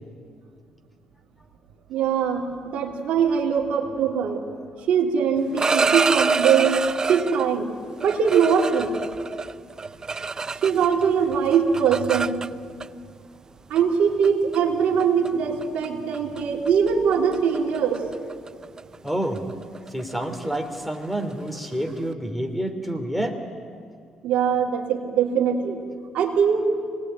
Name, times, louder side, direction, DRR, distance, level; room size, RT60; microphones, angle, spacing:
voice 1, 1.9-4.4 4.9-6.8 7.1-7.7 8.0-8.9 10.6-12.4 13.7-18.0 24.2-25.8 26.1-26.7, right 7 dB, 75° right, 0 dB, 3.1 m, -22 dB
sound 1, 5.4-7.5 8.0-11.1 11.3-12.9 13.8-13.9 14.2-14.6 15.0-15.3 15.6-15.9 16.1-16.4 16.7-22.0, right 4 dB, 35° right, 0.6 m, -27 dB
voice 2, 19.0-19.4 19.9-23.4, right 1 dB, ahead, 5 dB, 3.3 m, -28 dB
24.5 x 20.0 x 9.3 m, 2.2 s
supercardioid pair, 65°, 2 cm